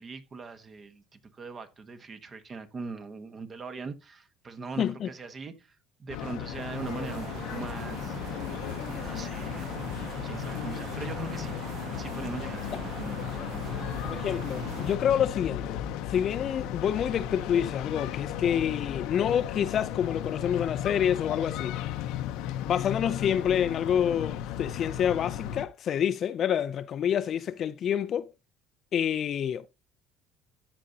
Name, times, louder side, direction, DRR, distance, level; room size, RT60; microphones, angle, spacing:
voice 1, 0.0-8.2 8.9-9.9 10.2-11.6 12.0-14.0, right 4 dB, 30° right, 1.2 m, -41 dB
voice 2, 4.8-5.1 14.0-15.8 16.1-21.7 22.6-28.3 28.9-29.7, left 9 dB, 45° left, 0.5 m, -28 dB
sound 1, 6.1-25.7, left 11 dB, 75° left, 0.8 m, -35 dB
sound 2, 6.5-15.0, right 10 dB, 55° right, 0.4 m, -42 dB
13.5 x 5.2 x 2.8 m
cardioid pair, 110°, 0 cm